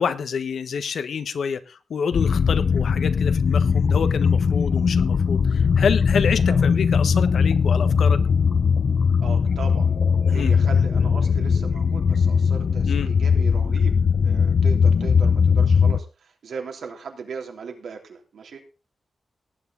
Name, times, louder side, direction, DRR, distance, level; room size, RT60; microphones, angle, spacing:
voice 1, 0.0-8.2 10.3-10.6 12.8-13.1, left 6 dB, 80° left, 1.2 m, -27 dB
sound 1, 2.1-16.0, left 6 dB, 60° left, 0.7 m, -19 dB
voice 2, 9.2-9.9 10.3-14.0 14.2-18.6, right 5 dB, 85° right, 3.3 m, -37 dB
18.5 x 9.7 x 4.0 m
wide cardioid pair, 135°, 0 cm